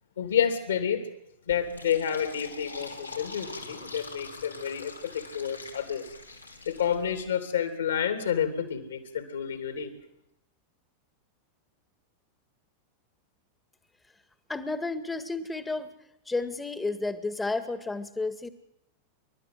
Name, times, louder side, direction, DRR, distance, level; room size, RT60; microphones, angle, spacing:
voice 1, 0.2-1.1 1.5-6.1 6.6-9.9, left 8 dB, 70° left, 8 dB, 3.1 m, -29 dB
Fill (with liquid), 1.5-7.2, left 3 dB, 85° left, 3.1 m, -44 dB
voice 2, 14.5-15.9 16.3-18.5, left 3 dB, 10° left, 12 dB, 1.8 m, -31 dB
28.5 x 12.5 x 7.8 m, 0.79 s
figure-of-eight pair, 90°, 0 cm